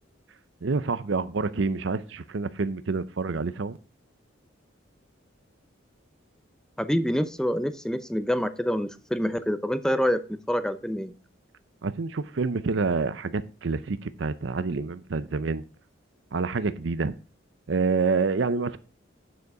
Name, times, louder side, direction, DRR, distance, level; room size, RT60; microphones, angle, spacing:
voice 1, 0.6-3.8 11.8-15.6 16.3-17.1 17.7-18.8, right 4 dB, 65° right, 0.6 m, -27 dB
voice 2, 6.8-11.1, equal, 5° left, 0.6 m, -26 dB
9.3 x 6.7 x 4.8 m
head